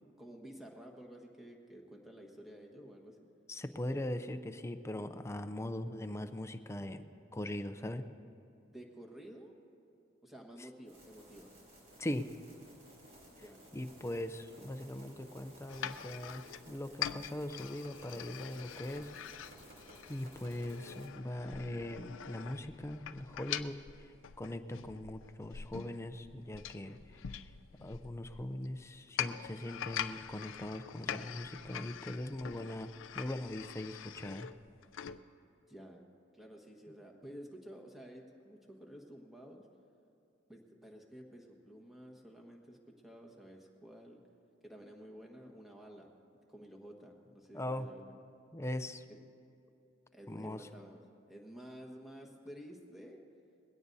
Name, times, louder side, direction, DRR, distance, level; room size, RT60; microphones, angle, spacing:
voice 1, 0.2-3.3 8.7-9.5 10.2-11.5 13.3-14.2 35.7-36.0 36.3-39.7 40.5-42.8 43.0-44.2 44.6-46.1 46.5-48.0 50.1-51.0 51.3-53.2, equal, ahead, 0 dB, 1.4 m, -52 dB
voice 2, 3.5-7.1 7.3-8.0 10.6-10.7 12.0-12.2 13.7-19.1 20.1-23.8 24.4-27.0 27.8-34.5 47.5-47.9 48.5-49.0 50.3-50.6, left 1 dB, 15° left, 9 dB, 0.5 m, -40 dB
sound 1, 10.9-21.1, right 1 dB, 50° right, 3.3 m, -57 dB
sound 2, 15.7-35.2, left 9 dB, 85° left, 0.4 m, -44 dB
21.0 x 16.5 x 2.7 m, 2.6 s
head